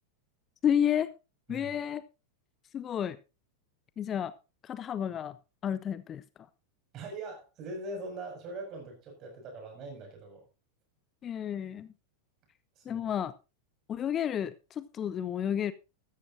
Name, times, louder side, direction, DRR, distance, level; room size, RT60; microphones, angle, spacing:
voice 1, 0.6-1.1 1.5-2.0 2.7-3.2 4.0-4.3 4.6-5.4 5.6-6.2 11.2-11.9 12.9-13.3 13.9-15.7, left 9 dB, 25° left, 17 dB, 0.5 m, -31 dB
voice 2, 6.9-10.4 12.8-13.1, right 2 dB, 35° right, 3 dB, 6.4 m, -42 dB
14.0 x 13.0 x 2.7 m, 0.29 s
figure-of-eight pair, 90°, 0 cm